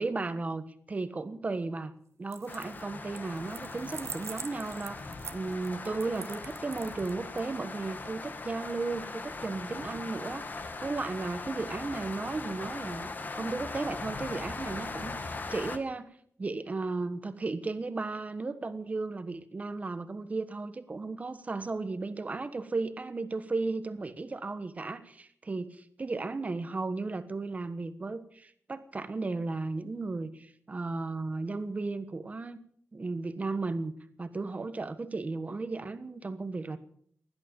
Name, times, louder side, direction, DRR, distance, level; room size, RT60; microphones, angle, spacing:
voice 1, 0.0-1.9 2.2-16.1 16.4-32.6 32.9-36.8, right 3 dB, 30° right, 11 dB, 1.3 m, -35 dB
sound 1, 2.2-2.8 3.1-7.4, right 6 dB, 70° right, 1.0 m, -44 dB
sound 2, 2.5-15.8, left 3 dB, 40° left, 1.6 m, -40 dB
16.5 x 11.5 x 7.3 m, 0.62 s
wide cardioid pair, 150°, 5 cm